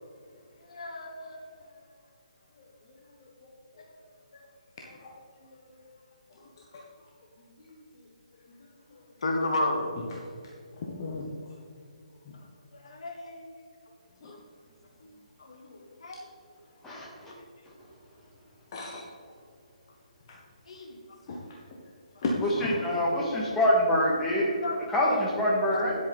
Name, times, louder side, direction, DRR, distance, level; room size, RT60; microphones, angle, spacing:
voice 1, 0.7-1.5 3.8-3.9 5.5-5.7 9.2-9.9 12.7-13.6 15.0-15.1 15.4-16.2 20.7-21.0 22.1-22.2 24.6-24.8 25.7-25.8, left 2 dB, 55° left, 2 dB, 1.4 m, -33 dB
voice 2, 2.6-3.8 4.9-5.1 6.3-6.8 7.5-8.1 8.6-9.1 10.1-11.5 12.1-12.3 14.2-14.4 16.1-16.2 18.7-19.0 20.3-20.4 21.3-21.8 22.2-22.8, left 2 dB, 40° left, -2 dB, 1.3 m, -38 dB
voice 3, 16.8-17.3 22.4-24.5 24.9-26.0, left 1 dB, 10° left, -4 dB, 2.0 m, -25 dB
10.0 x 8.3 x 4.1 m, 2.2 s
figure-of-eight pair, 140°, 4 cm